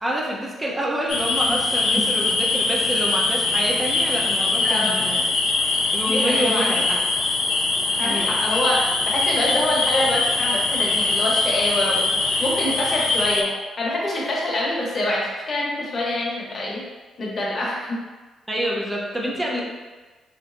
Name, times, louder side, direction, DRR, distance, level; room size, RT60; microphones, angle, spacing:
voice 1, 0.0-5.2 5.9-7.0 8.0-8.4 18.5-19.6, equal, 15° right, -3 dB, 0.7 m, -27 dB
sound 1, 1.1-13.4, left 3 dB, 70° left, 0.5 m, -22 dB
voice 2, 4.6-5.1 6.1-6.7 8.0-16.8 17.2-18.0, left 1 dB, 40° left, -4 dB, 0.9 m, -25 dB
3.2 x 3.0 x 2.6 m, 1.3 s
cardioid pair, 90°, 0 cm